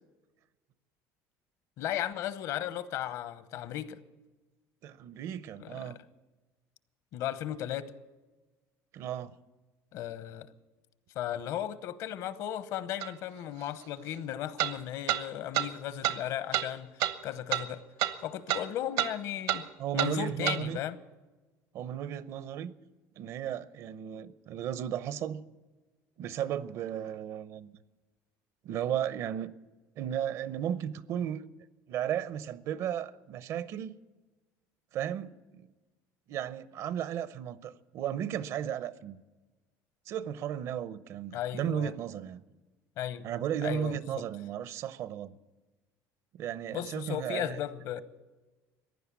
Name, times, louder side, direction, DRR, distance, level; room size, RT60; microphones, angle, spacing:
voice 1, 1.8-4.0 5.6-6.0 7.1-7.9 9.9-10.5 11.1-16.9 17.2-17.8 18.2-19.7 19.9-21.0 41.3-41.9 43.0-43.3 43.6-44.2 46.7-48.0, left 11 dB, 55° left, 0.9 m, -35 dB
voice 2, 4.8-6.0 8.9-9.3 19.8-20.8 21.7-22.7 23.2-25.4 26.2-27.7 28.6-29.5 30.0-31.5 31.9-33.9 34.9-35.7 36.3-39.2 40.1-42.4 43.2-45.4 46.3-47.6, right 10 dB, 50° right, 0.7 m, -35 dB
sound 1, 13.0-13.1 14.6-14.7 15.1-15.2 15.5-15.7 16.0-16.2 16.5-16.7 17.0-17.1 17.5-17.7 18.0-18.2 18.5-18.6 19.0-19.1 19.5-19.6 20.0-20.1 20.5-20.6, right 13 dB, 70° right, 1.0 m, -28 dB
15.5 x 11.0 x 8.3 m
cardioid pair, 160°, 7 cm